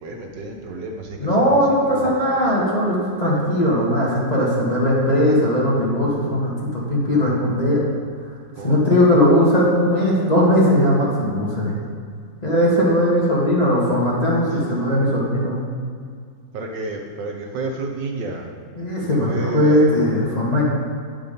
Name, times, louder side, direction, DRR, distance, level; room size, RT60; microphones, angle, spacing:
voice 1, 0.0-1.2 1.5-1.6 1.9-2.0 8.6-8.8 16.5-18.4 19.3-19.9, right 2 dB, 75° right, 1 dB, 1.6 m, -30 dB
voice 2, 1.2-7.8 8.6-11.8 12.4-15.7 18.8-20.6, equal, 20° left, -6 dB, 1.8 m, -18 dB
9.5 x 5.6 x 5.2 m, 2.1 s
omnidirectional pair, 2.0 m